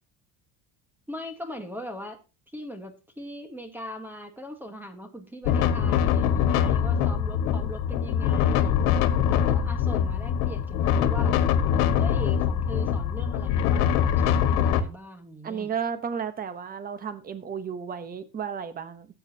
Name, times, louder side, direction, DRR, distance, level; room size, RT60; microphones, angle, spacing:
voice 1, 1.1-2.2 2.5-8.8 9.3-11.4 11.9-15.7, equal, 5° right, 7 dB, 1.3 m, -40 dB
sound 1, 5.4-14.8, left 8 dB, 85° left, 1.4 m, -23 dB
voice 2, 15.4-19.1, right 7 dB, 25° right, 11 dB, 1.0 m, -33 dB
14.5 x 8.0 x 2.8 m, 0.30 s
cardioid pair, 155°, 38 cm